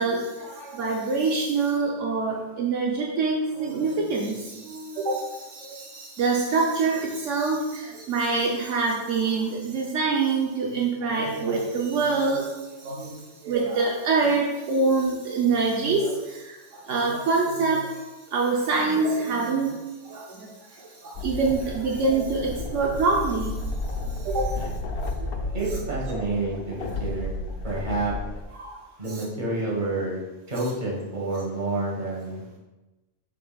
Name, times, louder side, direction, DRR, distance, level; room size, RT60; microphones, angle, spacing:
voice 1, 0.0-12.5 12.8-16.6 16.9-18.0 18.3-19.8 20.0-23.6 24.1-24.5 25.2-25.4 28.5-28.8 29.1-29.2, right 4 dB, 75° right, -1 dB, 1.1 m, -25 dB
sound 1, 21.1-28.4, left 2 dB, 55° left, 0.8 m, -32 dB
voice 2, 25.5-27.3 27.6-28.1 29.0-30.2 30.5-32.4, right 2 dB, 40° right, -4 dB, 1.6 m, -29 dB
6.8 x 6.5 x 2.3 m, 1.1 s
omnidirectional pair, 1.3 m